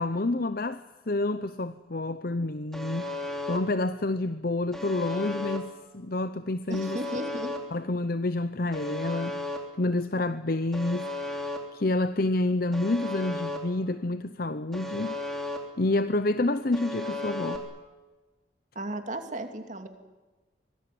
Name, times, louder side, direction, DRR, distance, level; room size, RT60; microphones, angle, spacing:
voice 1, 0.0-3.1 3.5-7.0 7.7-9.4 9.8-15.2 15.8-17.6, left 2 dB, 50° left, 0.8 m, -28 dB
Alarm, 2.7-3.6 4.7-5.6 6.7-7.6 8.7-9.6 10.7-11.6 12.7-13.6 14.7-15.6 16.7-17.6, left 2 dB, ahead, 3.3 m, -34 dB
voice 2, 6.7-7.5 18.7-19.9, right 1 dB, 40° right, 2.6 m, -35 dB
25.0 x 19.5 x 9.4 m
head